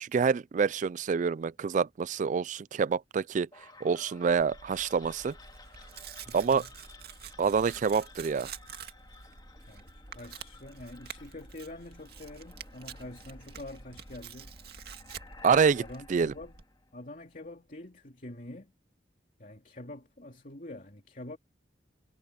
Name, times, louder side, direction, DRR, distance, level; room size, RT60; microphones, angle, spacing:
voice 1, 0.0-3.5 3.8-5.3 6.3-6.6 7.4-8.5 15.4-16.3, right 6 dB, 45° right, 0.3 m, -27 dB
sound 1, 3.5-17.4, left 3 dB, 25° left, 2.4 m, -53 dB
Tearing, 4.3-16.6, right 6 dB, 60° right, 2.2 m, -48 dB
voice 2, 6.3-6.7 9.6-14.5 15.8-16.6 16.9-18.7 19.4-21.4, left 1 dB, 50° left, 2.9 m, -46 dB
head